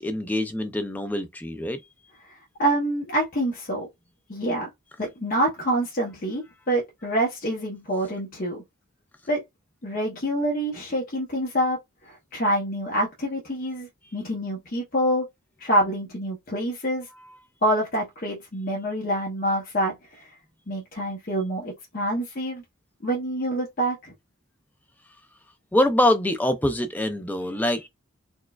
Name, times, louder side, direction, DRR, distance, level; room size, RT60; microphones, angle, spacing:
voice 1, 0.0-1.8 25.7-27.9, left 1 dB, 10° left, 0.4 m, -24 dB
voice 2, 2.3-3.9 4.3-4.7 5.0-8.6 9.3-9.4 9.8-11.8 12.0-15.2 15.6-17.1 17.6-20.3 20.7-22.6 23.0-24.1, right 1 dB, 40° left, 0.8 m, -26 dB
4.4 x 2.2 x 2.3 m
head